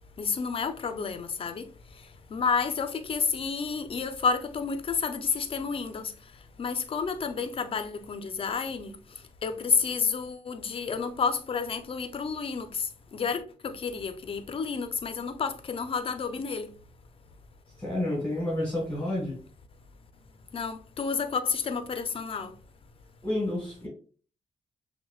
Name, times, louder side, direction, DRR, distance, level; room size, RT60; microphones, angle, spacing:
voice 1, 0.2-6.1 6.6-16.7 20.5-22.5, left 5 dB, 45° left, 0.5 m, -30 dB
voice 2, 17.8-19.4 23.2-23.9, left 1 dB, 10° left, 1.4 m, -30 dB
6.0 x 2.1 x 2.3 m
cardioid pair, 90°, 14 cm